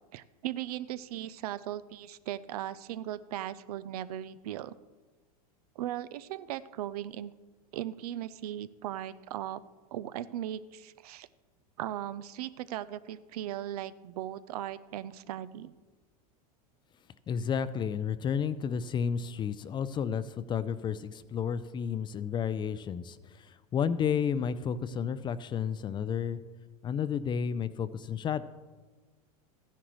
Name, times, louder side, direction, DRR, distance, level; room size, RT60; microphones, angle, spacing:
voice 1, 0.1-4.7 5.8-7.3 7.7-9.6 9.9-11.3 11.8-15.7, right 12 dB, 80° right, 16 dB, 0.5 m, -38 dB
voice 2, 17.3-26.4 26.8-28.4, left 7 dB, 25° left, 15 dB, 0.4 m, -32 dB
14.0 x 10.0 x 3.1 m, 1.3 s
hypercardioid pair, 110°, 19 cm